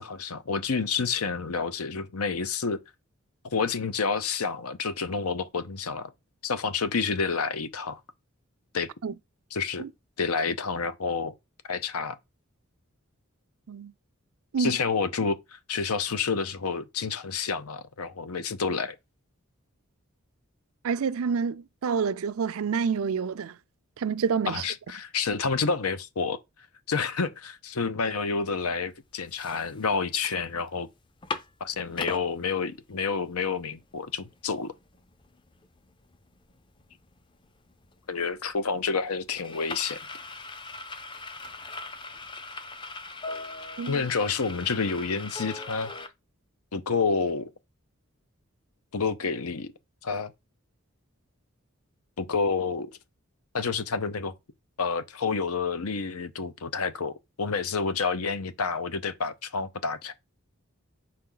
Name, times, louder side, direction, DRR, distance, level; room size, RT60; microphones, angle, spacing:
voice 1, 0.0-2.8 3.5-6.1 6.4-8.0 8.7-8.9 9.5-9.9 10.2-11.3 11.7-12.2 14.6-19.0 24.5-26.4 26.9-30.9 31.6-34.7 38.1-40.0 43.9-45.9 46.7-47.5 48.9-49.7 50.0-50.3 52.2-52.9 53.5-54.3 54.8-60.1, left 5 dB, 90° left, 0.8 m, -29 dB
voice 2, 20.8-23.5 24.0-24.6 43.8-44.0, right 6 dB, 75° right, 0.4 m, -28 dB
sound 1, 28.6-28.7 29.1-30.3 30.7-30.8 31.0-32.3 32.8-32.9 33.2-46.1, left 3 dB, 20° left, 0.5 m, -40 dB
6.1 x 4.3 x 3.8 m
head